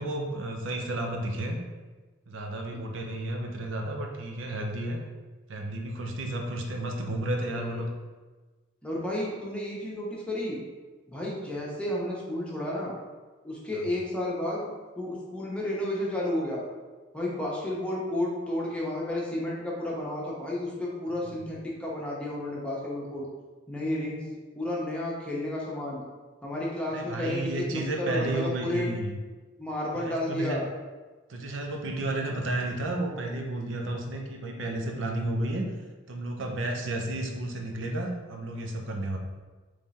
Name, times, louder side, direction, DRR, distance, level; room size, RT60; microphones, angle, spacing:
voice 1, 0.0-1.6 2.3-5.0 5.5-7.9 26.9-29.2 29.9-30.6 31.3-35.6 36.1-39.2, right 1 dB, 85° right, 2 dB, 0.6 m, -32 dB
voice 2, 2.7-3.1 7.3-7.9 8.8-10.6 11.1-12.9 13.4-14.7 15.0-16.6 17.1-23.3 23.7-24.3 24.5-26.0 26.4-28.9 29.6-30.7, left 1 dB, 5° left, -5 dB, 0.9 m, -32 dB
3.7 x 3.2 x 4.1 m, 1.3 s
head